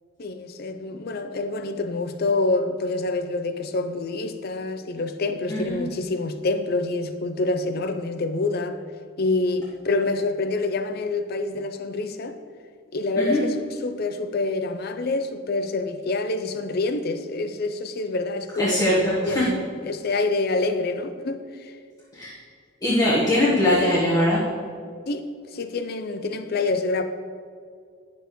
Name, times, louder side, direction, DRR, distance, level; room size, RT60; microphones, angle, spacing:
voice 1, 0.2-8.8 9.2-12.4 12.9-21.8 25.1-25.2 25.5-27.0, left 3 dB, 45° left, 0.4 m, -27 dB
voice 2, 5.5-5.8 13.2-13.4 18.6-19.4 22.1-22.3 22.8-24.4, left 1 dB, 15° left, 1.2 m, -21 dB
10.5 x 6.9 x 3.1 m
head